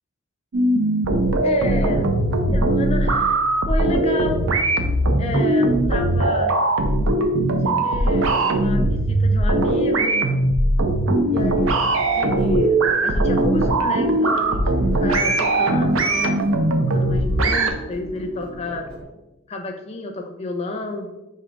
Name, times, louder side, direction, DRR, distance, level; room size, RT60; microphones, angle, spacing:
sound 1, 0.5-17.7, right 2 dB, 70° right, 0.5 m, -20 dB
voice 1, 1.4-4.4 5.2-6.7 7.6-10.3 11.3-11.7 12.2-16.4 16.9-18.9 19.5-21.1, left 2 dB, 30° left, 3 dB, 0.5 m, -30 dB
sound 2, 11.2-19.0, equal, 20° right, 1.2 m, -39 dB
5.0 x 2.7 x 3.4 m, 0.99 s
head